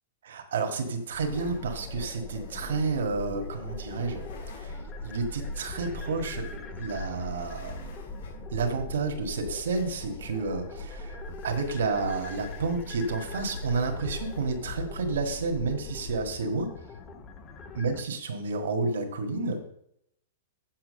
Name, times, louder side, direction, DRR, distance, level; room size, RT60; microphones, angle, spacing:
voice 1, 0.2-4.2 4.5-7.9 8.5-11.2 11.4-16.7 17.7-19.6, right 4 dB, 85° right, 4 dB, 1.6 m, -30 dB
sound 1, 1.1-16.3, left 1 dB, 65° left, 3.6 m, -41 dB
sound 2, 1.3-18.0, left 4 dB, 20° left, 0.9 m, -45 dB
7.7 x 5.9 x 6.4 m, 0.74 s
supercardioid pair, 160°, 0 cm